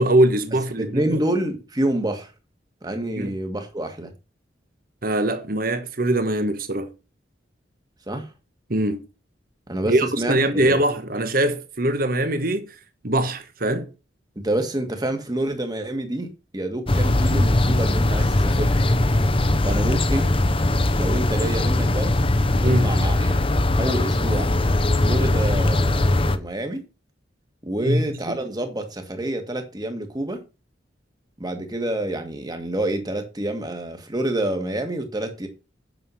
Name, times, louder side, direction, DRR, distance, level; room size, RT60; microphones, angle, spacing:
voice 1, 0.0-1.2 3.2-3.3 5.0-6.9 8.7-9.0 9.8-12.7 13.0-13.9 22.6-22.9 27.8-28.4, right 1 dB, 50° right, 1.3 m, -22 dB
voice 2, 0.8-2.3 2.8-4.1 8.1-8.3 9.7-10.8 14.3-18.8 19.6-20.5 20.9-22.1 22.6-23.4 23.8-24.5 24.9-26.9 27.6-30.4 31.4-35.5, right 1 dB, 20° right, 1.8 m, -28 dB
sound 1, 16.9-26.4, left 1 dB, 30° left, 0.8 m, -20 dB
9.1 x 6.5 x 5.6 m
head